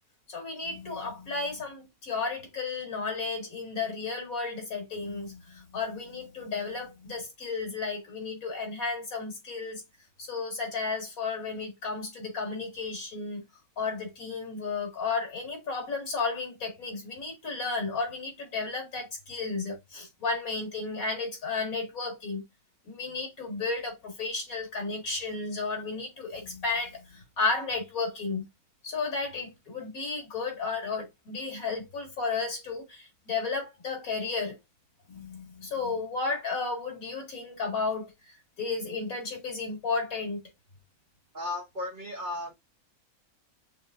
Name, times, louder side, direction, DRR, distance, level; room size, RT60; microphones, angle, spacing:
voice 1, 0.3-9.8 10.2-13.4 13.8-22.4 22.9-28.4 28.8-34.6 35.1-40.4, left 4 dB, 70° left, 2.5 m, -33 dB
voice 2, 41.3-42.5, left 2 dB, 40° right, 0.8 m, -35 dB
6.2 x 3.3 x 2.5 m
omnidirectional pair, 1.5 m